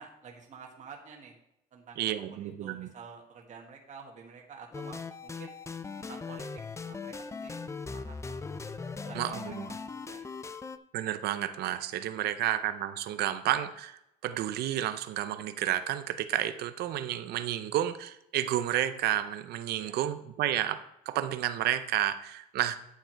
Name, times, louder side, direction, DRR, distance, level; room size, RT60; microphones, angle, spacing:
voice 1, 0.0-1.4 1.7-5.5 6.0-7.1 7.4-7.6 7.9-8.4 9.0-10.3 12.4-12.5 19.8-20.0, right 6 dB, 45° right, 1 dB, 1.6 m, -50 dB
voice 2, 2.0-2.9 9.1-9.7 10.9-20.8 21.1-22.8, right 12 dB, 70° right, 10 dB, 0.6 m, -31 dB
sound 1, 4.7-10.8, left 4 dB, 15° left, 0.5 m, -39 dB
9.1 x 7.0 x 4.5 m, 0.82 s
cardioid pair, 110°, 17 cm